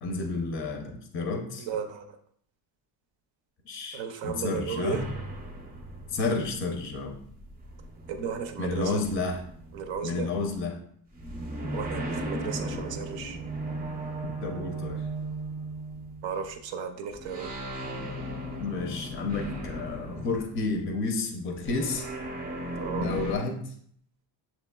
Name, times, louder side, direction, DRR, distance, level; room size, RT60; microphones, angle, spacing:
voice 1, 0.0-1.7 3.7-5.1 6.1-7.2 8.6-9.4 10.0-10.7 14.4-15.0 18.6-22.1 22.9-23.7, left 3 dB, 30° left, 3 dB, 0.5 m, -31 dB
voice 2, 1.6-2.1 3.9-5.0 8.1-9.0 9.7-10.3 11.7-13.4 16.2-17.5 22.8-23.1, right 6 dB, 65° right, 5 dB, 0.6 m, -34 dB
sound 1, 4.9-10.5 11.1-16.6 17.1-21.0 21.6-23.4, right 1 dB, 20° right, 0.6 m, -37 dB
7.1 x 3.0 x 2.2 m, 0.62 s
cardioid pair, 160°, 47 cm